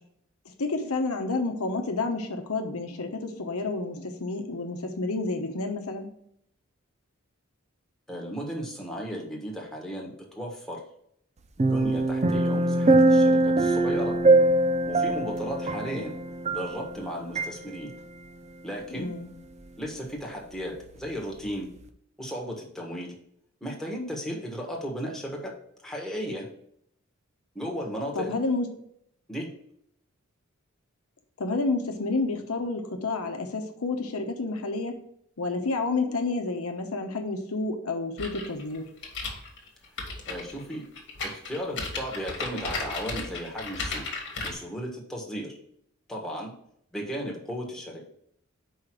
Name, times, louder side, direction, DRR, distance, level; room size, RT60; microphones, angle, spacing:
voice 1, 0.6-6.1 18.9-19.3 28.1-28.7 31.4-35.0 35.4-38.9, left 3 dB, 85° left, 4 dB, 0.9 m, -30 dB
voice 2, 8.1-10.8 11.6-14.2 14.9-16.1 16.5-17.9 18.6-19.1 19.8-21.7 22.2-23.1 23.6-25.5 25.8-26.5 27.5-28.4 29.3-29.5 40.3-40.9 41.2-44.1 44.4-45.5 46.1-46.5 46.9-48.0, equal, ahead, -2 dB, 1.4 m, -35 dB
sound 1, 11.6-17.0 17.4-17.5, right 2 dB, 30° right, 0.5 m, -22 dB
sound 2, 38.2-44.5, left 3 dB, 60° left, 1.5 m, -35 dB
5.0 x 4.7 x 6.1 m, 0.71 s
head